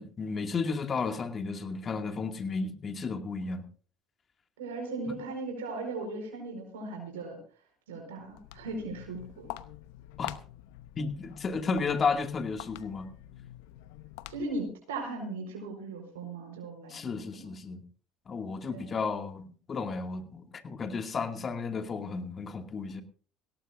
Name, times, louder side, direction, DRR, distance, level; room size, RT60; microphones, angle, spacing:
voice 1, 0.0-3.6 5.1-5.2 10.2-10.3 11.0-13.1 16.9-17.8 18.3-23.0, left 4 dB, 35° left, 5 dB, 2.3 m, -33 dB
voice 2, 4.6-7.4 7.9-9.5 14.3-17.5 18.7-18.9, right 2 dB, 85° right, 2 dB, 4.7 m, -38 dB
Walk footsteps, 8.2-14.7, left 15 dB, 75° left, 0.8 m, -45 dB
19.0 x 17.5 x 2.7 m, 0.42 s
hypercardioid pair, 75°, 0 cm